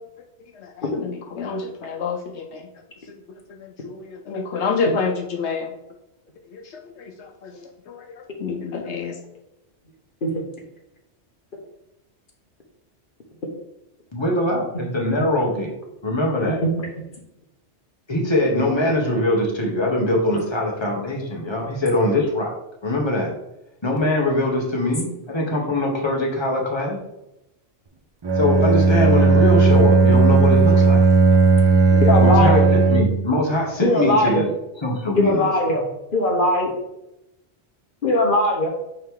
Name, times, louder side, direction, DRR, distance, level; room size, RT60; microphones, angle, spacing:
voice 1, 1.0-2.4 3.8-3.9 4.3-5.7 8.4-9.1, left 4 dB, 75° left, 3 dB, 1.0 m, -26 dB
voice 2, 14.1-15.7 16.0-16.6 18.1-22.5 22.8-23.3 23.8-27.0 28.4-31.0 32.2-34.5 34.8-35.5, left 1 dB, 25° left, -2 dB, 1.4 m, -22 dB
Bowed string instrument, 28.2-33.3, right 3 dB, 45° right, 0.3 m, -15 dB
voice 3, 31.9-32.7 33.8-34.5 35.2-35.9 36.1-36.7 38.0-38.7, left 1 dB, 50° left, 1 dB, 1.2 m, -20 dB
8.8 x 3.2 x 3.8 m, 0.87 s
omnidirectional pair, 1.2 m